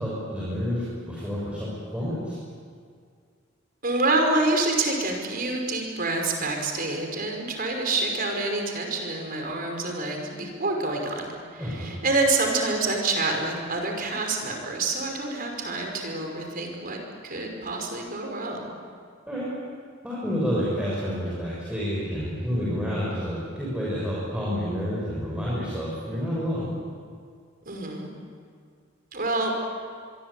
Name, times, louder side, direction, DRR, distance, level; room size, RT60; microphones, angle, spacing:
voice 1, 0.0-2.3 11.6-11.9 19.3-19.5 20.0-26.7, equal, 5° right, -8 dB, 6.7 m, -29 dB
voice 2, 3.8-17.0 17.2-18.7 27.7-28.1 29.1-29.5, right 2 dB, 50° right, 3 dB, 5.3 m, -27 dB
25.0 x 23.0 x 8.6 m, 2.1 s
head